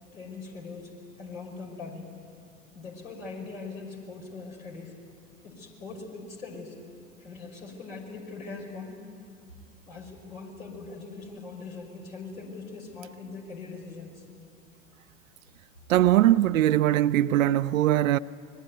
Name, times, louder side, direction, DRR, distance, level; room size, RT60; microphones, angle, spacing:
voice 1, 0.1-0.9 1.2-2.1 2.7-4.9 5.4-6.7 7.2-9.0 9.9-14.2, left 4 dB, 80° left, 5.5 m, -41 dB
voice 2, 15.9-18.2, right 13 dB, 75° right, 0.6 m, -21 dB
25.0 x 21.5 x 9.4 m
figure-of-eight pair, 85°, 41 cm